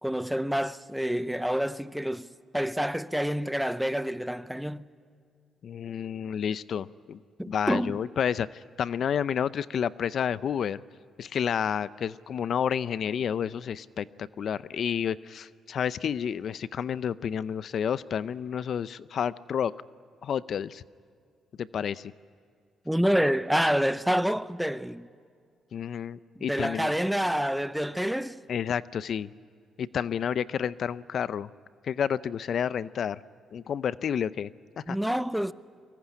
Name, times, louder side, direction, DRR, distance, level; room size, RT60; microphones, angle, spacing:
voice 1, 0.0-4.9 7.4-8.0 22.9-25.1 26.4-28.4 34.9-35.5, equal, 5° right, 0.7 m, -28 dB
voice 2, 5.6-7.2 7.5-10.8 11.2-19.7 20.2-20.8 21.6-22.1 25.7-26.9 28.5-29.3 29.8-31.5 31.8-33.2 33.5-34.5 34.8-35.0, left 8 dB, 60° left, 0.5 m, -30 dB
23.5 x 20.5 x 9.9 m
cardioid pair, 90°, 0 cm